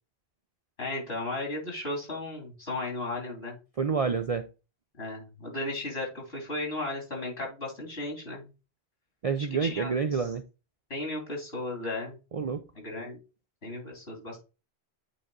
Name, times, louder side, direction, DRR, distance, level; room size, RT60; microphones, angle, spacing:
voice 1, 0.8-3.6 4.9-8.5 9.6-10.3 10.9-12.2 12.8-13.2 13.6-14.4, left 2 dB, 70° left, 3.4 m, -35 dB
voice 2, 3.8-4.5 9.2-10.4 12.3-12.6, right 5 dB, 50° right, 0.4 m, -28 dB
8.4 x 3.8 x 3.9 m
omnidirectional pair, 1.1 m